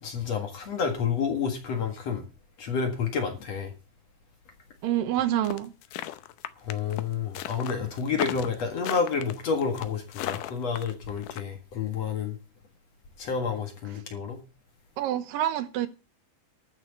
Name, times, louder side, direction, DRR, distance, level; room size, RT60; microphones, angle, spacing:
voice 1, 0.0-2.2 2.6-3.7 6.6-12.4 13.2-14.4, left 6 dB, 50° left, 2.5 m, -29 dB
voice 2, 4.8-5.7 15.0-15.9, right 12 dB, 75° right, 2.4 m, -27 dB
sound 1, 5.4-11.4, left 13 dB, 75° left, 2.1 m, -35 dB
13.0 x 6.3 x 7.1 m
omnidirectional pair, 4.3 m